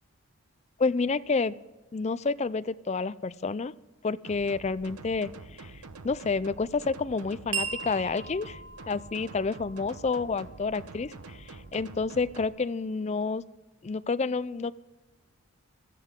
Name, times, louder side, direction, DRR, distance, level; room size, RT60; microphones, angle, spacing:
voice 1, 0.8-1.5 1.9-3.7 4.0-5.3 5.6-5.7 6.0-8.6 8.9-13.4 13.8-14.7, left 4 dB, 30° left, 15 dB, 0.3 m, -29 dB
sound 1, 4.2-12.5, right 3 dB, 90° right, 0.9 m, -46 dB
sound 2, 7.5-12.2, right 5 dB, 55° right, 1.7 m, -40 dB
17.0 x 13.5 x 3.6 m, 1.1 s
head